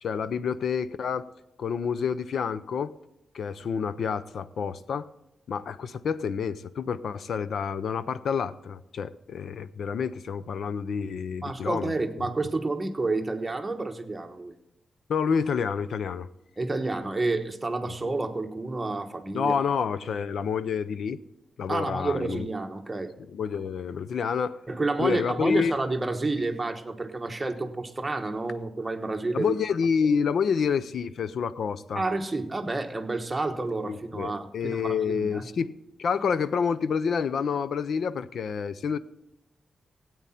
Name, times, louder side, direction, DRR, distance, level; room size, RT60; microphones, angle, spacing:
voice 1, 0.0-1.3 1.6-2.9 3.3-5.1 5.5-11.9 12.2-12.3 15.1-16.3 19.3-21.2 21.6-22.5 23.3-24.6 25.0-25.7 29.3-32.0 33.8-35.7 36.0-39.0, left 6 dB, 70° left, 15 dB, 0.6 m, -28 dB
voice 2, 11.4-14.5 16.6-19.5 21.7-23.1 24.7-29.5 31.9-35.5, right 2 dB, 20° right, 4 dB, 1.2 m, -30 dB
17.0 x 8.7 x 4.2 m, 0.91 s
wide cardioid pair, 130°, 0 cm